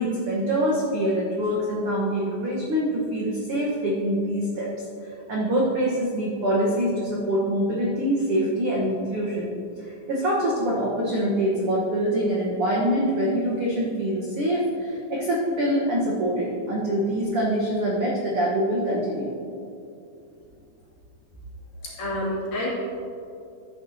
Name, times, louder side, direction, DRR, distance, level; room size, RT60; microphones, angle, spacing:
voice 1, 0.0-4.7 5.3-9.5 9.8-19.3, equal, 80° right, -4 dB, 1.2 m, -25 dB
voice 2, 21.8-22.7, left 1 dB, 60° left, -7 dB, 3.8 m, -28 dB
12.5 x 9.5 x 2.7 m, 2.6 s
omnidirectional pair, 4.4 m